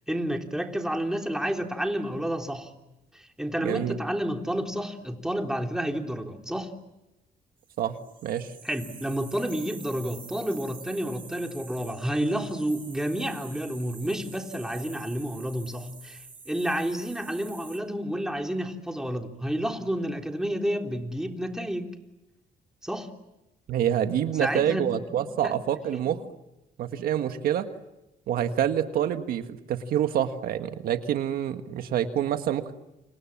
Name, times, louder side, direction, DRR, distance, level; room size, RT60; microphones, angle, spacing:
voice 1, 0.1-2.7 3.1-6.7 8.6-21.9 22.8-23.1 24.4-25.5 25.9-26.1, equal, 5° right, 3 dB, 3.5 m, -30 dB
voice 2, 3.6-4.0 7.8-8.5 23.7-26.2 26.8-27.7 28.3-32.7, right 10 dB, 80° right, 7 dB, 1.8 m, -27 dB
sound 1, 7.9-17.8, right 5 dB, 35° right, 3.5 m, -47 dB
29.5 x 27.0 x 7.5 m, 0.96 s
cardioid pair, 90°, 15 cm